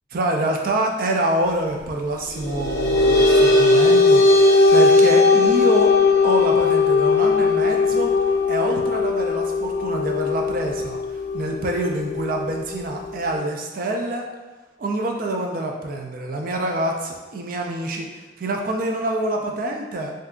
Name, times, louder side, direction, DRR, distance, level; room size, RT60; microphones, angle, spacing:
voice 1, 0.1-5.9 6.2-8.1 8.5-11.0 11.3-14.3 14.8-20.1, right 1 dB, 55° right, 2 dB, 0.4 m, -26 dB
sound 1, 2.4-13.3, left 3 dB, 70° left, 0.6 m, -18 dB
2.7 x 2.3 x 3.5 m, 1.2 s
head